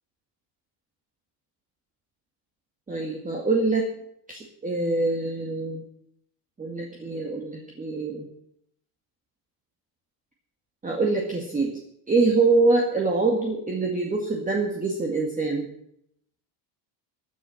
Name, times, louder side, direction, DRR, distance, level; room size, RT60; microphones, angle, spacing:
voice 1, 2.9-3.9 4.3-5.8 6.6-8.3 10.8-11.8 12.1-15.7, right 3 dB, 15° right, 0 dB, 2.1 m, -24 dB
16.0 x 10.0 x 5.8 m, 0.72 s
cardioid pair, 130°, 50 cm